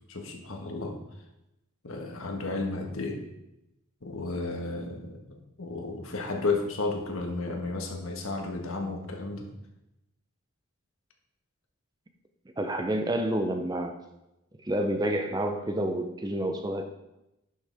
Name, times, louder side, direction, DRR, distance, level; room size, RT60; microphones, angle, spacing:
voice 1, 0.1-1.0 1.8-3.2 4.0-9.5, left 3 dB, 65° left, 3 dB, 1.4 m, -33 dB
voice 2, 12.6-13.9 14.6-16.9, right 1 dB, 20° right, 6 dB, 0.6 m, -29 dB
11.0 x 6.3 x 3.5 m, 0.90 s
head